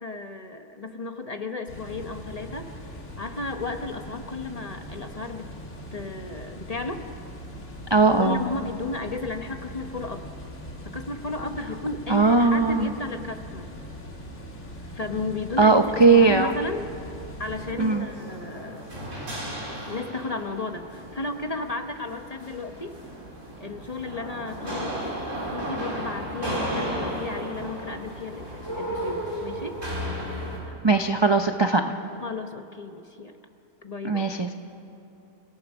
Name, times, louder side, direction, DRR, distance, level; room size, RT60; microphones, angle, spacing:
voice 1, 0.0-2.7 3.2-5.5 5.9-7.0 8.2-10.3 10.8-13.7 14.9-16.9 17.4-18.8 19.9-23.0 23.6-25.2 25.5-29.7 32.2-33.3 33.8-34.3, left 3 dB, 30° left, 5 dB, 0.9 m, -33 dB
sound 1, 1.7-17.7, equal, 50° left, 2.3 m, -41 dB
voice 2, 7.9-8.4 12.1-12.9 15.6-16.5 17.8-18.1 30.8-32.0 34.0-34.5, right 3 dB, 35° right, 5 dB, 0.4 m, -19 dB
sound 2, 17.5-30.6, equal, 55° right, 4.9 m, -34 dB
29.5 x 17.0 x 6.2 m, 2.7 s
omnidirectional pair, 1.6 m